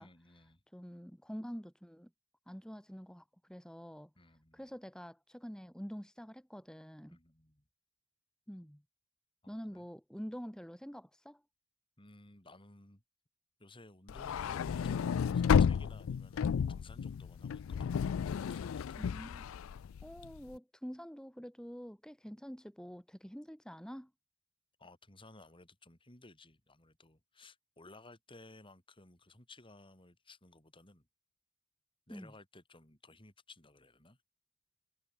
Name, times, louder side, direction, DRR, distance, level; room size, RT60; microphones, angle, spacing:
voice 1, 0.0-0.6 4.2-4.7 7.1-7.6 9.4-9.9 12.0-13.0 13.6-19.0 24.8-31.1 32.1-34.2, left 2 dB, 25° left, 4.4 m, -58 dB
voice 2, 0.7-2.1 2.5-4.1 4.5-7.2 8.5-8.8 9.5-11.4 19.0-19.5 20.0-24.1 32.1-32.3, equal, 5° left, 3.3 m, -47 dB
sound 1, 14.1-20.4, left 7 dB, 85° left, 0.4 m, -32 dB
head